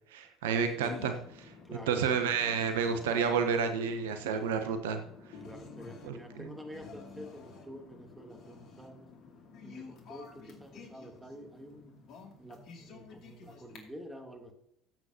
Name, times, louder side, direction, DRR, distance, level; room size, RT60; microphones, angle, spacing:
voice 1, 0.1-1.1 1.9-5.0 6.0-6.5, right 6 dB, 75° right, 8 dB, 0.8 m, -30 dB
sound 1, 0.6-13.8, left 4 dB, 55° left, 2.5 m, -50 dB
voice 2, 1.6-2.1 5.4-9.1 9.6-11.9 12.4-14.5, equal, 10° right, 2 dB, 2.9 m, -48 dB
15.0 x 8.0 x 2.8 m, 0.71 s
hypercardioid pair, 60°, 0 cm